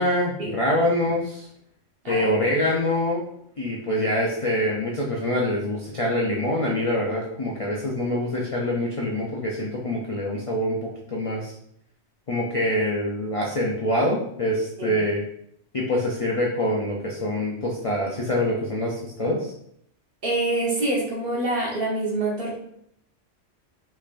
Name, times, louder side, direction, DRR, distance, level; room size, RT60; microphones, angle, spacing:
voice 1, 0.0-1.5 2.1-3.2 3.6-11.5 12.3-15.2 15.7-19.5, left 1 dB, 60° left, -2 dB, 0.3 m, -25 dB
voice 2, 2.0-2.6 14.8-15.0 20.2-22.6, right 2 dB, 50° right, -4 dB, 1.2 m, -26 dB
3.3 x 3.3 x 2.4 m, 0.70 s
omnidirectional pair, 1.3 m